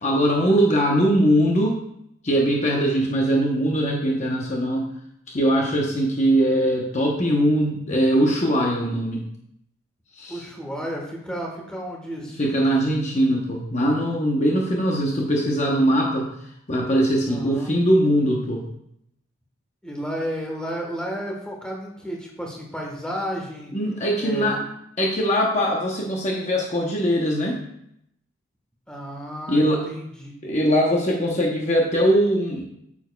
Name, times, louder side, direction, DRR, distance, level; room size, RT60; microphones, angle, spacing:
voice 1, 0.0-1.8 2.2-4.9 5.3-9.2 10.1-10.4 12.4-16.3 16.7-18.6 23.7-24.6 25.0-27.6 29.5-29.8 30.4-32.6, equal, 35° left, -1 dB, 0.8 m, -21 dB
voice 2, 10.3-12.4 17.2-17.7 19.8-23.7 24.2-24.6 28.9-30.3, equal, 5° left, -1 dB, 1.2 m, -32 dB
8.8 x 7.1 x 2.3 m, 0.76 s
head